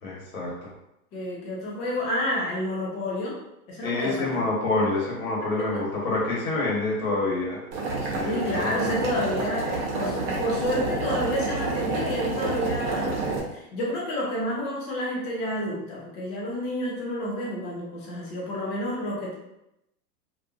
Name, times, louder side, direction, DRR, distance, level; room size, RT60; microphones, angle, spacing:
voice 1, 0.0-0.7 3.8-7.6 8.0-8.9, left 2 dB, 60° left, -4 dB, 1.3 m, -27 dB
voice 2, 1.1-3.4 3.7-4.5 5.6-5.8 8.2-13.2 13.5-19.3, left 1 dB, 15° left, -4 dB, 0.4 m, -30 dB
Boiling, 7.7-13.4, right 3 dB, 30° right, 0.7 m, -28 dB
2.6 x 2.5 x 2.3 m, 0.86 s
hypercardioid pair, 115°, 46 cm